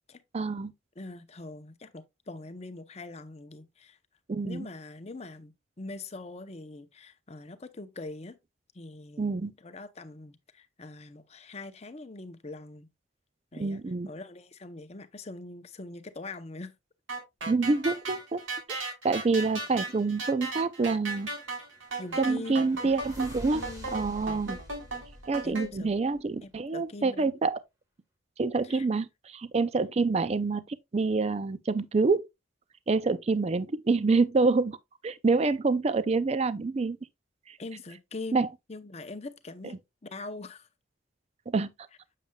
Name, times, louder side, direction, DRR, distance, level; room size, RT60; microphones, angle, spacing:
voice 1, 0.3-0.7 4.3-4.7 9.2-9.5 13.6-14.1 17.5-18.4 18.7-21.3 22.2-23.6 23.9-24.6 25.3-27.6 28.4-32.2 32.9-34.8 35.0-37.0 37.5-37.6 38.3-38.5 41.5-41.7, right 3 dB, 35° right, 0.4 m, -27 dB
voice 2, 1.0-4.0 4.5-8.4 8.7-12.9 13.5-16.7 18.8-19.0 22.0-23.0 23.5-23.9 25.4-25.9 26.4-27.4 28.6-28.9 37.6-39.8 40.0-40.7, left 2 dB, 35° left, 0.7 m, -43 dB
sound 1, 17.1-25.7, right 3 dB, 85° right, 3.0 m, -36 dB
sound 2, 21.3-26.3, equal, 20° right, 1.3 m, -47 dB
7.5 x 7.1 x 2.2 m
head